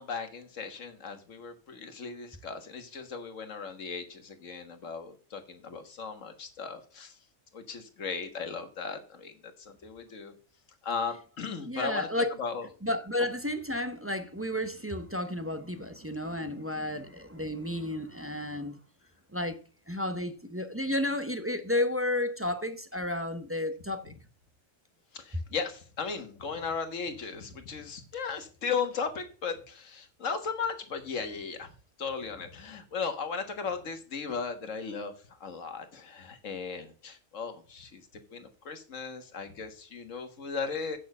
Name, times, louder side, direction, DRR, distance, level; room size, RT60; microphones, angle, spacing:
voice 1, 0.0-7.2 7.5-10.3 10.8-12.1 12.4-12.7 25.1-31.7 32.0-41.0, left 5 dB, 70° left, 1.7 m, -36 dB
voice 2, 11.6-12.3 12.8-18.8 19.3-19.6 19.9-24.1, left 1 dB, 15° right, 0.6 m, -32 dB
8.6 x 6.4 x 5.4 m
omnidirectional pair, 1.4 m